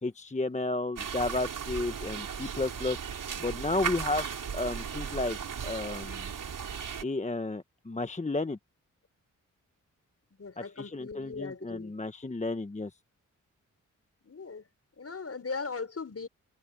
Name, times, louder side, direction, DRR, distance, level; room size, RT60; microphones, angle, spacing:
voice 1, 0.0-4.3 4.5-5.4 5.6-6.3 7.0-8.6 10.6-13.0, left 2 dB, 20° left, 1.2 m, -32 dB
sound 1, 1.0-7.0, right 7 dB, 70° right, 3.7 m, -36 dB
voice 2, 10.3-11.9 14.2-14.7 15.0-16.3, left 4 dB, 45° left, 5.9 m, -39 dB
supercardioid pair, 50°, 34 cm